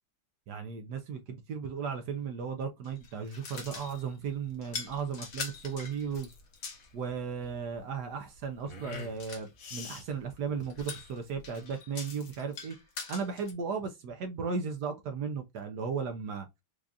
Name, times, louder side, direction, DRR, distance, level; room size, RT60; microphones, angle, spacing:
voice 1, 0.5-6.3 6.9-12.8 13.1-16.5, right 6 dB, 70° right, 1.0 m, -36 dB
sound 1, 2.8-4.1 4.6-6.9 8.9-9.5 10.6-13.5, left 5 dB, 55° left, 1.1 m, -43 dB
sound 2, 3.6-11.6, left 4 dB, 80° left, 2.1 m, -48 dB
4.8 x 2.4 x 2.5 m
omnidirectional pair, 2.3 m